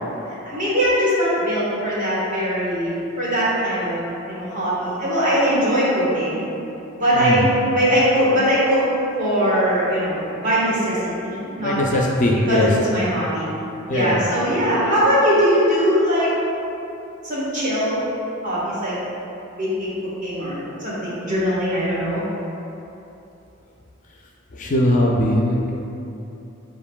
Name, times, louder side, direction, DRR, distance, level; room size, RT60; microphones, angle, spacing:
voice 1, 0.4-4.0 4.3-6.4 6.9-8.9 9.2-11.7 12.4-13.5 13.9-16.3 17.2-18.0 18.4-19.0 19.6-19.9 20.2-22.2, equal, 40° right, -8 dB, 1.3 m, -21 dB
voice 2, 11.6-12.7 13.9-14.2 24.6-25.6, left 1 dB, 40° left, -2 dB, 0.4 m, -19 dB
7.2 x 2.5 x 2.3 m, 2.9 s
head